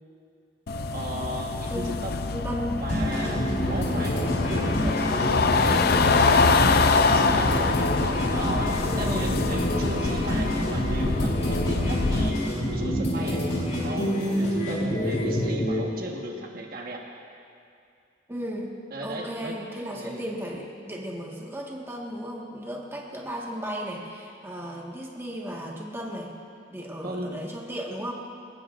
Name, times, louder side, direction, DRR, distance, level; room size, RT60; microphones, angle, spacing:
sound 1, 0.7-12.3, left 4 dB, 60° left, 0.5 m, -25 dB
voice 1, 0.9-2.2 2.7-4.2 4.5-6.1 6.8-7.7 8.0-12.4 12.7-13.4 13.8-17.0 18.9-19.5 19.9-20.2 27.0-27.4, right 1 dB, 55° right, 0 dB, 1.4 m, -36 dB
voice 2, 2.3-2.8 3.2-3.6 8.9-9.3 18.3-18.7 19.0-26.3 26.7-28.1, equal, 15° right, -2 dB, 1.6 m, -35 dB
sound 2, 2.9-15.8, equal, 40° left, 4.2 m, -27 dB
21.5 x 19.0 x 2.6 m, 2.4 s
head